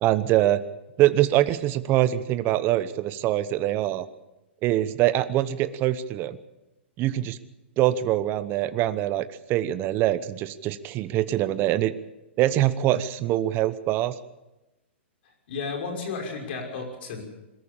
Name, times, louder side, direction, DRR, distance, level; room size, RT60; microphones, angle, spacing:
voice 1, 0.0-0.6 1.0-4.1 4.6-6.4 7.0-7.4 7.8-11.9 12.4-14.2, right 13 dB, 35° right, 14 dB, 0.9 m, -24 dB
voice 2, 15.5-17.2, left 4 dB, 60° left, 3 dB, 5.9 m, -33 dB
21.5 x 14.0 x 8.7 m, 0.99 s
hypercardioid pair, 125°, 6 cm